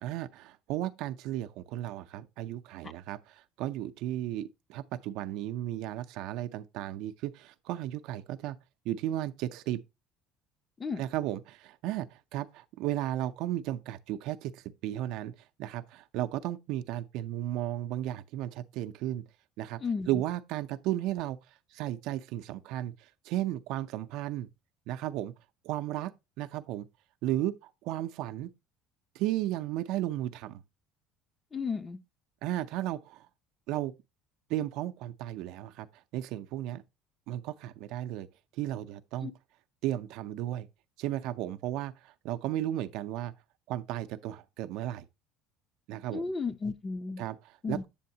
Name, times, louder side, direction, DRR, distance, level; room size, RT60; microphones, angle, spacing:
voice 1, 0.0-8.6 8.9-9.8 11.0-19.2 19.6-19.8 20.1-21.4 21.7-22.9 23.3-24.5 24.9-25.3 25.6-26.1 26.4-26.9 27.2-28.5 29.2-30.6 32.4-33.3 33.7-33.9 34.5-35.9 36.1-36.8 37.3-38.3 38.6-39.3 39.8-40.7 41.0-43.3 43.7-45.1 45.9-46.2 47.2-47.9, right 13 dB, 70° right, 0.5 m, -34 dB
voice 2, 31.5-32.0 39.2-39.3 46.1-47.2 47.6-47.8, left 4 dB, 25° left, 0.6 m, -33 dB
8.5 x 6.9 x 2.7 m
cardioid pair, 115°, 0 cm